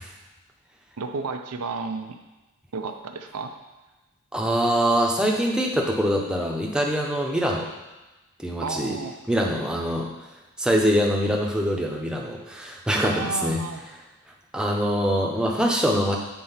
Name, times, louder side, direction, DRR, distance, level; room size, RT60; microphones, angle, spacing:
voice 1, 1.0-2.2 2.7-3.5 8.6-9.1 13.0-13.8, right 4 dB, 90° right, 5 dB, 0.6 m, -32 dB
voice 2, 4.3-7.7 8.4-9.0 9.3-10.1 10.6-13.6 14.5-16.2, equal, 5° right, -1 dB, 0.8 m, -24 dB
8.0 x 4.4 x 5.7 m, 1.1 s
head